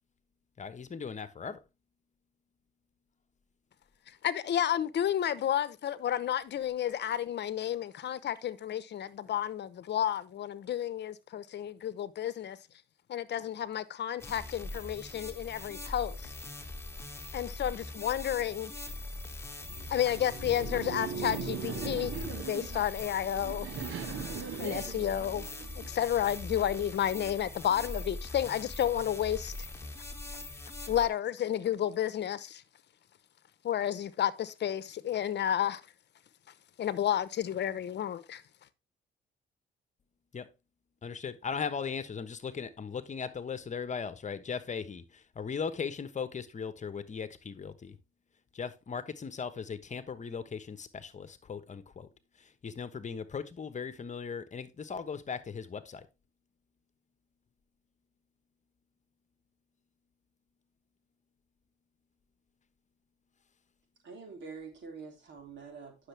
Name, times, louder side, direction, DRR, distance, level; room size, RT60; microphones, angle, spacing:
voice 1, 0.6-1.6 40.3-40.5 41.0-48.0 48.5-52.1 52.4-56.1, left 6 dB, 35° left, 1.2 m, -38 dB
voice 2, 4.2-12.6 13.1-16.3 17.3-18.7 19.9-23.7 24.6-25.5 25.7-29.5 30.9-32.6 33.6-35.8 36.8-38.4, left 10 dB, 60° left, 0.9 m, -31 dB
sound 1, 14.2-31.1, left 2 dB, 15° left, 1.9 m, -42 dB
Laughter, 19.6-25.9, right 6 dB, 85° right, 1.7 m, -39 dB
voice 3, 64.0-66.1, right 5 dB, 65° right, 3.6 m, -46 dB
9.9 x 6.6 x 3.4 m
cardioid pair, 90°, 20 cm